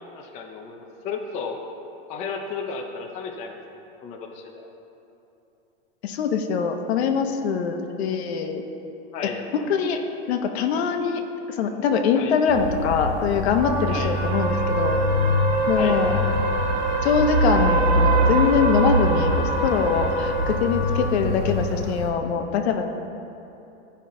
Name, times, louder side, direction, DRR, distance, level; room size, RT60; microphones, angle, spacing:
voice 1, 0.1-1.6 2.1-3.6 4.0-4.7 9.1-9.4 12.1-12.4 13.9-14.3 15.8-16.0, left 5 dB, 20° left, 2 dB, 0.5 m, -33 dB
voice 2, 6.0-8.6 9.5-10.0 10.3-11.2 11.5-15.0 15.7-16.2 17.0-22.9, left 6 dB, 75° left, 5 dB, 0.9 m, -23 dB
sound 1, 12.5-22.1, right 1 dB, 85° right, 1.5 m, -23 dB
Wind instrument woodwind instrument, 13.6-21.2, right 1 dB, 55° right, 1.1 m, -34 dB
13.5 x 5.6 x 3.7 m, 2.9 s
supercardioid pair, 155°, 33 cm